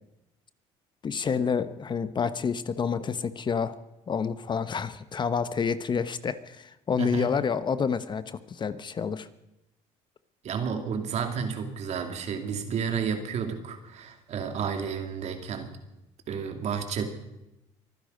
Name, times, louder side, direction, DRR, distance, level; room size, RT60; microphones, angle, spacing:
voice 1, 1.0-3.8 4.1-9.3, left 6 dB, 35° left, 13 dB, 0.9 m, -28 dB
voice 2, 7.0-7.4 10.4-15.8 16.3-17.1, right 6 dB, 55° right, 7 dB, 2.3 m, -31 dB
23.5 x 10.0 x 5.3 m, 0.93 s
supercardioid pair, 90°, 13 cm